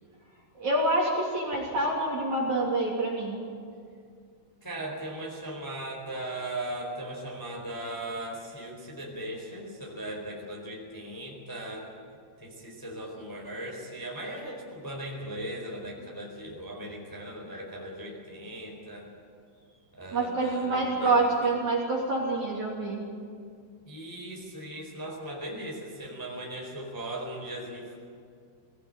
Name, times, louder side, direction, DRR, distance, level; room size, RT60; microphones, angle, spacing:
voice 1, 0.6-3.4 20.1-23.0, right 2 dB, 40° right, -3 dB, 4.0 m, -27 dB
voice 2, 4.6-11.9 12.4-19.1 19.9-21.5 23.8-28.0, right 1 dB, 5° left, -1 dB, 3.6 m, -38 dB
21.5 x 18.0 x 9.1 m, 2.2 s
omnidirectional pair, 5.5 m